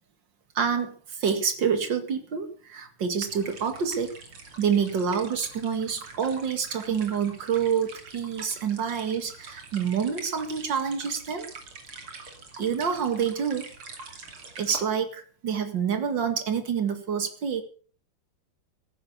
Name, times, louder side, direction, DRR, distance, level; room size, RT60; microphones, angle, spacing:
voice 1, 0.5-4.1 4.6-11.5 12.6-13.7 14.6-17.6, right 7 dB, 60° right, 8 dB, 2.7 m, -27 dB
sound 1, 3.3-14.8, right 4 dB, 85° right, 3.6 m, -45 dB
14.5 x 11.5 x 6.8 m, 0.42 s
omnidirectional pair, 2.3 m